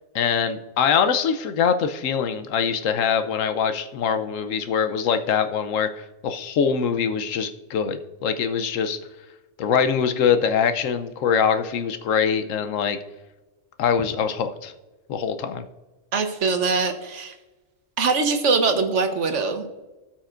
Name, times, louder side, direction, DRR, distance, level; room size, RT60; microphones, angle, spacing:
voice 1, 0.1-9.0 9.6-13.0 13.8-14.7 15.1-15.6, left 7 dB, 90° left, 9 dB, 1.1 m, -23 dB
voice 2, 16.1-17.3 18.0-19.7, right 4 dB, 70° right, 7 dB, 1.3 m, -22 dB
17.0 x 6.0 x 2.5 m, 1.2 s
omnidirectional pair, 1.3 m